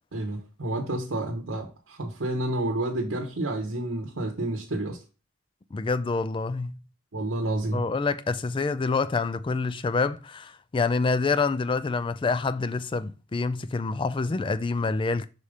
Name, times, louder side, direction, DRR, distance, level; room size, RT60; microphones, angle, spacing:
voice 1, 0.1-5.0 7.1-7.8, right 1 dB, 75° right, 1.0 m, -30 dB
voice 2, 5.7-6.8 7.7-15.3, left 4 dB, 25° left, 0.3 m, -27 dB
5.1 x 4.2 x 4.9 m
head